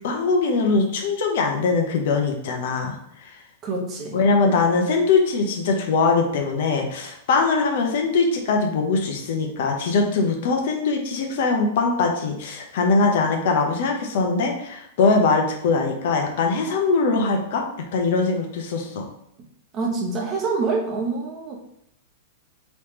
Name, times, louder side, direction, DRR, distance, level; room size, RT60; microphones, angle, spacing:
voice 1, 0.0-3.0 3.2-3.4 4.1-17.6 17.9-19.1, left 4 dB, 60° left, 2 dB, 0.8 m, -21 dB
voice 2, 3.6-4.2 19.7-21.5, right 4 dB, 25° right, 0 dB, 0.9 m, -26 dB
3.4 x 3.1 x 3.1 m, 0.76 s
supercardioid pair, 145°, 0 cm